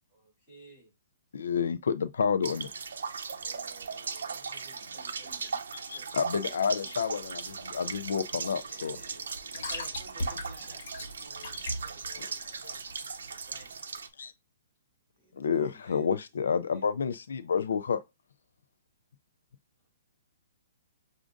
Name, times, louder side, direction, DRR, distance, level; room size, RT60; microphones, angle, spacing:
voice 1, 0.1-0.9 3.3-5.3 8.7-12.2 13.3-13.7, right 1 dB, 20° left, 2.8 m, -54 dB
voice 2, 1.3-2.7 5.7-9.0 11.5-11.6 12.1-12.7 14.2-14.3 15.4-18.0, left 6 dB, 80° left, 0.3 m, -30 dB
sound 1, 2.4-14.1, right 5 dB, 85° right, 0.6 m, -38 dB
voice 3, 4.7-6.7 15.2-16.1 16.7-16.8, left 1 dB, 5° right, 1.9 m, -58 dB
sound 2, 7.4-13.7, left 1 dB, 55° left, 1.3 m, -40 dB
6.1 x 2.5 x 2.5 m
hypercardioid pair, 165°, 0 cm